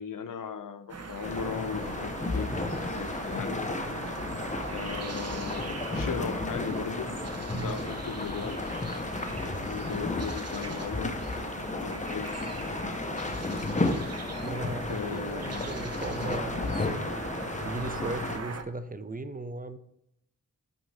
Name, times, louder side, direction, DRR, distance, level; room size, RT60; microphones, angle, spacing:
voice 1, 0.0-2.5 2.9-3.7 4.7-7.1 7.5-8.6 9.6-11.2 11.8-12.3 14.9-15.7, left 6 dB, 75° left, 10 dB, 0.6 m, -37 dB
sound 1, 0.9-18.6, right 4 dB, 50° right, 0.8 m, -41 dB
sound 2, 1.2-18.4, left 2 dB, 25° left, 0.7 m, -33 dB
voice 2, 14.4-17.1 17.6-19.8, right 2 dB, 25° right, 10 dB, 0.5 m, -37 dB
6.1 x 5.2 x 3.3 m, 0.79 s
wide cardioid pair, 65°, 32 cm